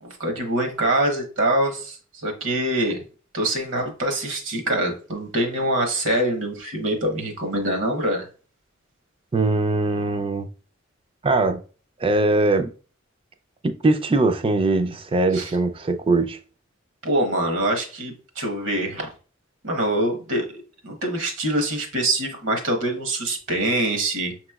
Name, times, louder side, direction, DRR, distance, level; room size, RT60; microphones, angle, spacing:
voice 1, 0.0-3.0 3.3-8.3 15.3-15.5 17.0-19.1 19.6-20.5 20.8-24.3, right 1 dB, 70° right, 1.0 m, -24 dB
voice 2, 9.3-10.5 11.2-11.6 12.0-12.7 13.6-16.4, right 2 dB, 30° right, 0.4 m, -21 dB
5.8 x 3.0 x 2.3 m
head